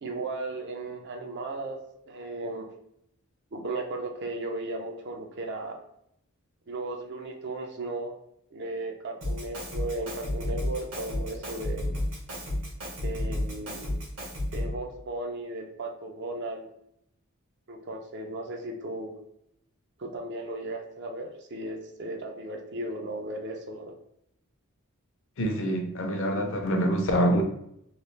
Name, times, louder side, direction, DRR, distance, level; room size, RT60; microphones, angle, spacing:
voice 1, 0.0-2.7 3.5-5.8 6.7-8.1 8.5-11.8 13.0-13.9 14.5-16.7 17.7-19.1 20.0-23.9, right 2 dB, 50° right, 3 dB, 0.5 m, -36 dB
Drum kit, 9.2-14.8, left 1 dB, 65° right, 1.1 m, -32 dB
voice 2, 25.4-27.4, equal, 60° left, 4 dB, 0.5 m, -25 dB
3.0 x 2.4 x 3.1 m, 0.76 s
head